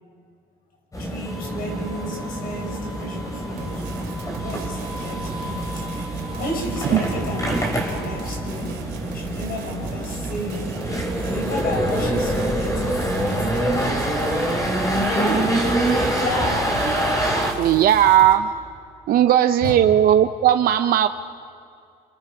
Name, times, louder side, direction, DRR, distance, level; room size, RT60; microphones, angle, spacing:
Subway arriving and leaving at Station (Hamburg), 0.9-17.5, right 1 dB, 20° left, 3.4 m, -25 dB
voice 1, 1.0-3.8 4.4-5.8 6.4-8.9 9.1-10.7 11.3-14.1 15.1-16.9 19.1-19.3 19.6-19.7, left 1 dB, 60° left, 0 dB, 5.7 m, -32 dB
sound 1, 3.6-18.3, right 7 dB, 80° right, 2.5 m, -37 dB
voice 2, 17.6-18.5 19.1-21.1, right 11 dB, 60° right, 9 dB, 0.6 m, -16 dB
28.5 x 26.5 x 5.0 m, 2.4 s
cardioid pair, 110°, 17 cm